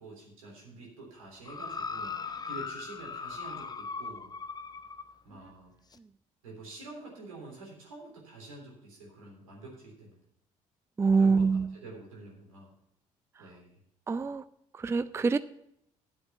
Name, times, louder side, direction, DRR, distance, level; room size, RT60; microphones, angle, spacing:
voice 1, 0.0-2.2 2.4-4.3 5.2-5.7 6.4-10.2 11.2-11.4 11.8-12.7 13.4-13.8, right 2 dB, 80° right, -2 dB, 3.4 m, -47 dB
sound 1, 1.5-5.1 5.9-6.0, left 5 dB, 25° left, 0.7 m, -39 dB
voice 2, 11.0-11.7 13.4-13.5 14.1-14.5 14.7-15.4, right 4 dB, 15° right, 15 dB, 0.4 m, -26 dB
10.5 x 7.9 x 5.7 m, 0.76 s
figure-of-eight pair, 50°, 17 cm